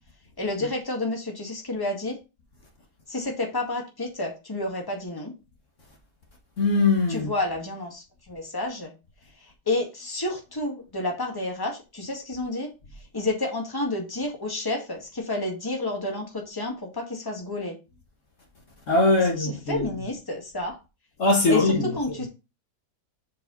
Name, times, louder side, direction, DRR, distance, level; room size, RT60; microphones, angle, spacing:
voice 1, 0.4-2.2 3.1-5.3 7.1-8.9 9.4-12.7 13.1-17.8 19.4-20.8 21.5-22.3, left 2 dB, 15° left, 1.8 m, -30 dB
voice 2, 6.6-7.3 18.9-19.8 21.2-22.0, left 2 dB, 55° left, 1.6 m, -21 dB
7.3 x 4.8 x 4.0 m
omnidirectional pair, 1.6 m